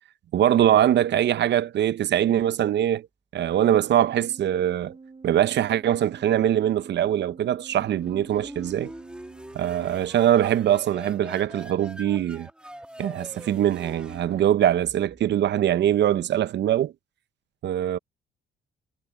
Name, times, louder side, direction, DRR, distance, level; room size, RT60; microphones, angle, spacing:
voice 1, 0.3-3.1 3.3-5.0 5.2-8.9 9.5-12.5 13.0-16.9 17.6-18.0, right 11 dB, 60° right, 0.7 m, -22 dB
Organ, 3.7-10.3, right 4 dB, 30° right, 7.2 m, -48 dB
sound 1, 7.7-15.3, right 1 dB, 5° right, 2.0 m, -43 dB
cardioid pair, 90°, 20 cm